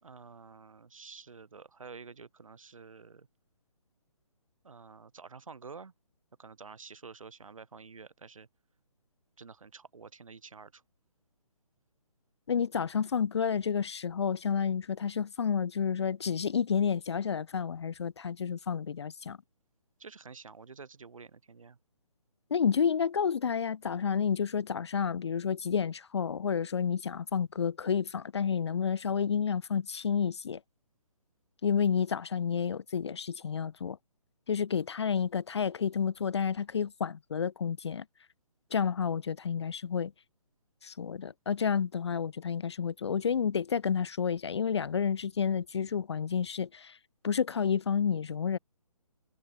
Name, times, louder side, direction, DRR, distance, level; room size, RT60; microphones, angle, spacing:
voice 1, 0.0-3.3 4.6-5.9 6.4-8.5 9.4-10.8 20.0-21.8, right 5 dB, 60° right, 3.5 m, -49 dB
voice 2, 12.5-19.4 22.5-30.6 31.6-34.0 34.5-38.0 38.7-40.1 40.8-47.0 47.2-48.6, left 7 dB, 45° left, 0.4 m, -30 dB
figure-of-eight pair, 140°, 19 cm